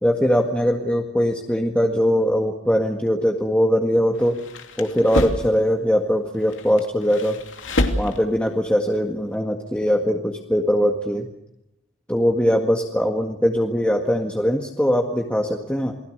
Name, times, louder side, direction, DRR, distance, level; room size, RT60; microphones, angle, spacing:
voice 1, 0.0-4.4 4.8-7.4 8.0-11.3 12.1-15.9, equal, 5° left, 1 dB, 1.8 m, -21 dB
sound 1, 4.2-5.6 6.3-8.5, left 1 dB, 85° left, 2.8 m, -27 dB
29.0 x 20.5 x 6.7 m, 0.86 s
head